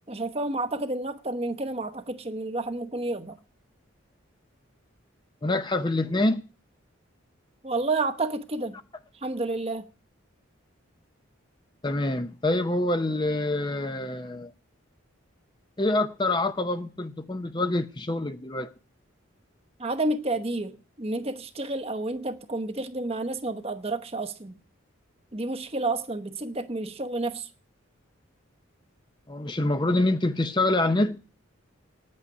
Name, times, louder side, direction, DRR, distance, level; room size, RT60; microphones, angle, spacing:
voice 1, 0.1-3.3 7.6-8.8 9.2-9.9 19.8-24.6 25.3-27.5, right 2 dB, 30° right, 1.0 m, -30 dB
voice 2, 5.4-6.4 11.8-14.5 15.8-18.7 29.3-31.2, left 2 dB, 20° left, 0.6 m, -26 dB
9.6 x 8.6 x 9.6 m
head